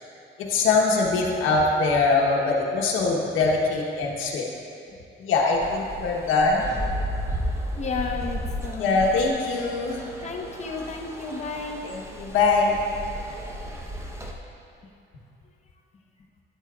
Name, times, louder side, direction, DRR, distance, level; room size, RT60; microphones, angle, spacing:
voice 1, 0.5-4.4 5.2-6.7 8.8-10.0 11.8-12.8, left 3 dB, 85° left, -2 dB, 1.1 m, -22 dB
sound 1, 5.6-14.3, equal, 15° right, 0.9 m, -34 dB
voice 2, 7.8-9.0 10.2-11.8, left 4 dB, 35° left, 2 dB, 0.9 m, -32 dB
11.0 x 8.4 x 2.4 m, 2.7 s
cardioid pair, 90°, 20 cm